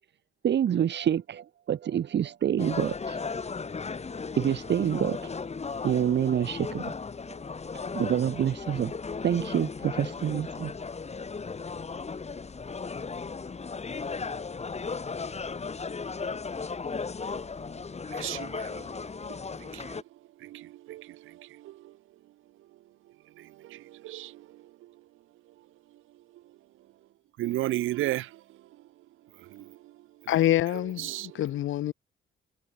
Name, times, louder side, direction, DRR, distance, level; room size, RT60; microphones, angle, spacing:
voice 1, 0.4-3.2 4.4-5.3 5.8-7.0 7.7-9.0 9.2-10.7, right 9 dB, 60° right, 4.2 m, -27 dB
sound 1, 2.6-20.0, left 4 dB, 35° left, 7.7 m, -36 dB
voice 2, 18.1-22.0 23.3-25.0 25.9-26.4 27.4-28.7 29.3-30.3 30.7-31.4, right 15 dB, 90° right, 7.5 m, -37 dB
voice 3, 30.3-31.9, left 13 dB, 80° left, 3.8 m, -26 dB
cardioid pair, 90°, 20 cm